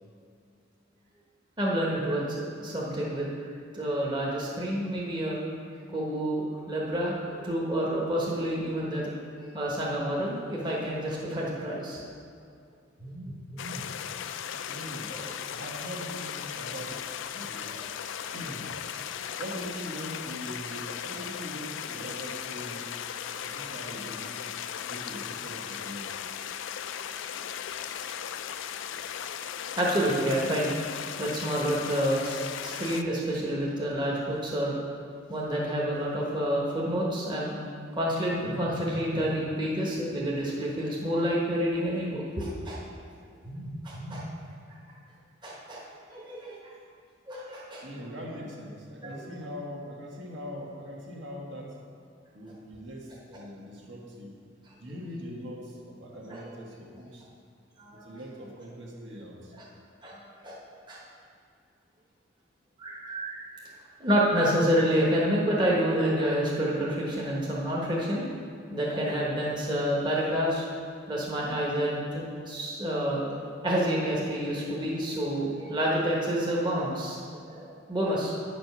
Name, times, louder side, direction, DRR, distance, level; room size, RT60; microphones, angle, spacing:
voice 1, 1.6-3.3 3.7-5.4 5.9-12.0 13.0-13.8 15.1-15.2 23.3-23.5 29.8-30.8 31.2-34.8 35.3-37.6 38.0-42.8 43.5-44.2 45.4-45.8 46.1-46.6 47.3-47.8 49.0-49.2 56.3-56.4 57.8-58.0 60.0-60.6 60.9-61.0 62.8-63.4 64.0-68.2 68.7-70.7 71.1-73.2 73.6-77.2 77.5-78.3, equal, 25° right, -4 dB, 1.1 m, -28 dB
sound 1, 13.6-33.0, left 9 dB, 70° left, 0.4 m, -37 dB
voice 2, 14.7-15.2 15.5-17.8 18.3-18.7 19.4-22.9 23.4-24.5 24.9-26.1 47.8-51.8 52.3-54.3 54.8-57.3 57.9-59.5, equal, 65° right, -2 dB, 1.6 m, -41 dB
9.3 x 5.1 x 6.0 m, 2.3 s
head